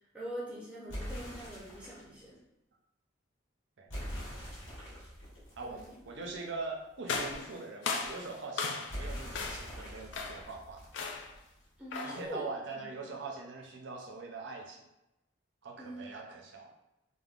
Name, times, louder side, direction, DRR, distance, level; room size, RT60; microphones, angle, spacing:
voice 1, 0.1-2.4 5.6-6.3 11.8-12.4 12.7-13.0 15.8-16.0, right 1 dB, 5° right, -5 dB, 0.5 m, -44 dB
sound 1, 0.9-2.1 3.9-6.6 8.9-11.6, equal, 80° left, 1.3 m, -43 dB
voice 2, 5.6-10.8 12.0-14.9 15.6-16.7, right 3 dB, 65° right, 1 dB, 0.5 m, -42 dB
sound 2, 7.1-9.0 9.3-9.8 10.1-10.5 10.9-11.4 11.9-12.3, left 4 dB, 65° left, 0.3 m, -36 dB
3.4 x 2.1 x 2.4 m, 0.92 s
head